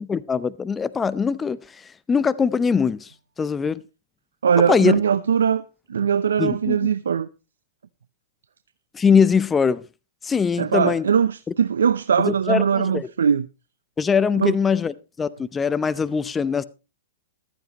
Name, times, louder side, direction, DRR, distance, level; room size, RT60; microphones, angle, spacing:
voice 1, 0.1-3.1 3.4-3.8 4.7-5.0 6.4-6.9 8.9-9.8 10.2-11.0 12.3-13.1 14.0-16.6, left 6 dB, 15° left, 0.7 m, -22 dB
voice 2, 4.4-7.3 10.6-13.5 14.4-14.5, right 7 dB, 80° right, 0.6 m, -21 dB
15.0 x 13.5 x 3.0 m
hypercardioid pair, 120°, 0 cm